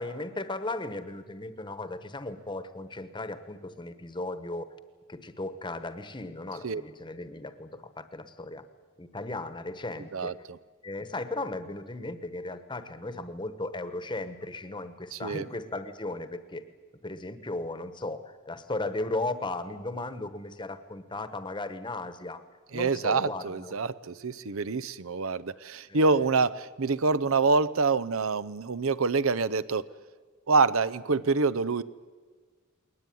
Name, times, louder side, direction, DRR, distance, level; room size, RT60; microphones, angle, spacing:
voice 1, 0.0-4.7 5.1-8.7 9.0-10.4 10.8-16.6 17.0-22.4 22.7-23.7 25.9-26.3, left 2 dB, 20° left, 11 dB, 1.1 m, -36 dB
voice 2, 15.1-15.4 22.7-29.9 30.5-31.8, right 4 dB, 70° right, 15 dB, 0.7 m, -26 dB
21.0 x 19.0 x 9.3 m, 1.5 s
head